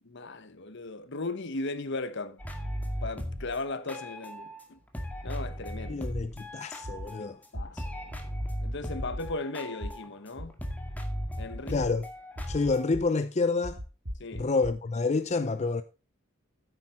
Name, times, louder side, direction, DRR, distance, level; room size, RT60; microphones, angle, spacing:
voice 1, 0.1-2.4 3.0-4.8 5.2-6.1 7.5-8.3 8.6-10.5 11.4-11.9 14.2-14.5, left 3 dB, 60° left, 1.1 m, -37 dB
sound 1, 2.4-4.6 4.9-7.5 7.7-12.9, equal, 10° left, 2.0 m, -37 dB
sound 2, 5.8-6.2 6.8-7.1 7.5-7.6 8.1-8.5 9.0-9.3 9.8-9.9 10.4-10.8 11.4-11.9 12.4-13.0 13.6-14.7, equal, 80° right, 2.7 m, -37 dB
voice 2, 5.9-7.4 11.7-12.0 12.5-13.8 14.3-15.8, left 3 dB, 35° left, 0.5 m, -28 dB
9.8 x 8.8 x 4.3 m
head